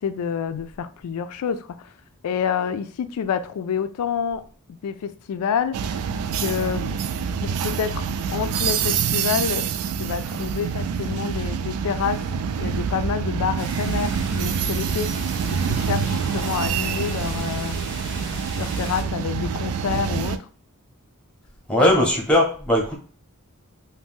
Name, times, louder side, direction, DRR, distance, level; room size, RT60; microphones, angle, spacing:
voice 1, 0.0-1.9 2.2-4.5 4.8-5.9 6.4-6.9 7.4-8.0 8.3-9.7 10.0-12.3 12.6-15.1 15.5-17.8 18.6-20.5 21.8-22.0, left 7 dB, 85° left, 0.3 m, -28 dB
sound 1, 5.7-20.4, right 6 dB, 90° right, 0.3 m, -26 dB
sound 2, 13.6-19.0, right 3 dB, 55° right, 0.7 m, -36 dB
voice 2, 21.7-23.0, left 1 dB, 5° left, 0.6 m, -19 dB
2.6 x 2.1 x 3.5 m
head